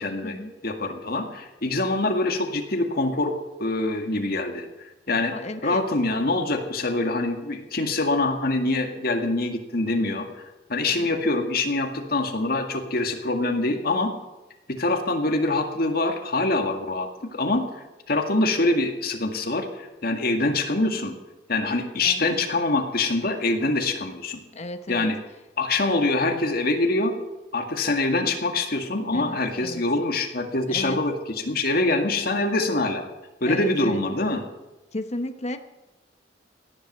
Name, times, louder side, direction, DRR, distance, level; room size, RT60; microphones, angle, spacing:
voice 1, 0.0-3.3 3.6-5.3 5.6-10.3 10.7-14.1 14.7-21.1 21.5-24.4 24.9-25.2 25.6-27.1 27.5-33.1 33.4-34.4, left 2 dB, 55° left, 4 dB, 1.9 m, -25 dB
voice 2, 5.3-5.8 10.9-11.0 22.0-22.2 24.5-25.1 29.1-29.8 30.7-31.0 31.9-32.1 33.5-34.0 34.9-35.6, left 1 dB, 40° left, 8 dB, 1.0 m, -34 dB
17.0 x 11.0 x 6.7 m, 1.0 s
head